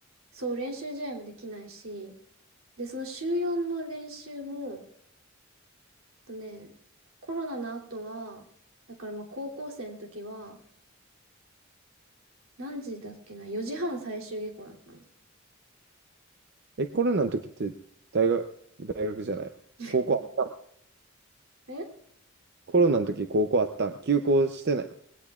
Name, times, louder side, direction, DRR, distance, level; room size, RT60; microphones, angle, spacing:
voice 1, 0.3-2.2 2.8-4.8 6.3-6.7 7.3-8.5 8.9-10.6 12.6-15.0 19.8-20.2 21.7-21.9, right 1 dB, 85° right, 0 dB, 2.9 m, -35 dB
voice 2, 16.8-17.7 18.1-18.4 18.8-19.5 19.9-20.5 22.7-24.9, right 3 dB, 55° right, 7 dB, 0.6 m, -25 dB
20.0 x 17.5 x 2.4 m, 0.68 s
head